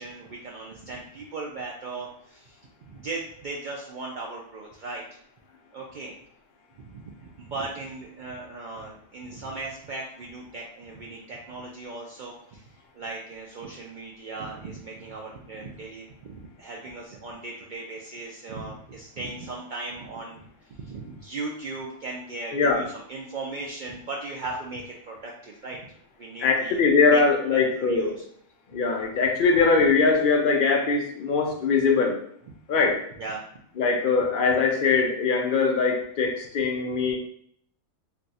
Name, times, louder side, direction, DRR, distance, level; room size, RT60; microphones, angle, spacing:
voice 1, 0.0-5.0 5.7-6.1 6.8-12.6 12.9-20.4 20.8-25.8 26.2-26.8 27.1-27.2 27.5-28.2 33.2-33.4 37.0-37.1, right 3 dB, 70° right, -3 dB, 0.4 m, -37 dB
voice 2, 22.5-22.8 26.4-28.1 28.7-32.2 32.7-33.0 33.8-37.2, left 4 dB, 60° left, 2 dB, 0.5 m, -22 dB
2.5 x 2.3 x 4.0 m, 0.64 s
omnidirectional pair, 1.3 m